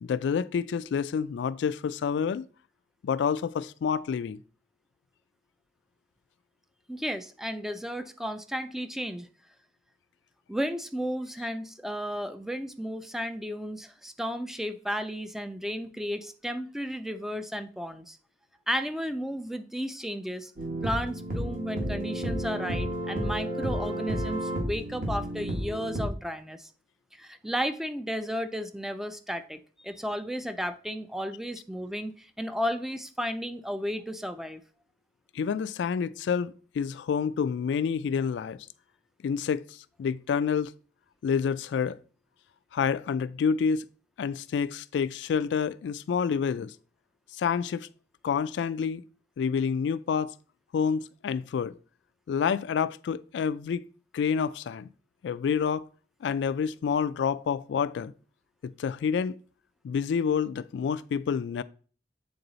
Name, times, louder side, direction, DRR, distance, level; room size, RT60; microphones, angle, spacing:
voice 1, 0.0-2.4 3.0-4.4 35.3-38.7 39.2-40.7 41.2-42.0 42.7-43.8 44.2-46.7 47.4-47.9 48.2-49.0 49.4-50.3 50.7-51.7 52.3-53.8 54.1-54.9 55.2-55.9 56.2-58.1 58.6-59.4 59.8-61.6, left 6 dB, 80° left, 0.3 m, -28 dB
voice 2, 6.9-9.3 10.5-18.2 18.7-20.5 20.8-26.7 27.1-34.6, equal, ahead, 0.4 m, -33 dB
sound 1, 20.6-26.1, equal, 50° right, 1.6 m, -31 dB
8.0 x 3.8 x 3.9 m
head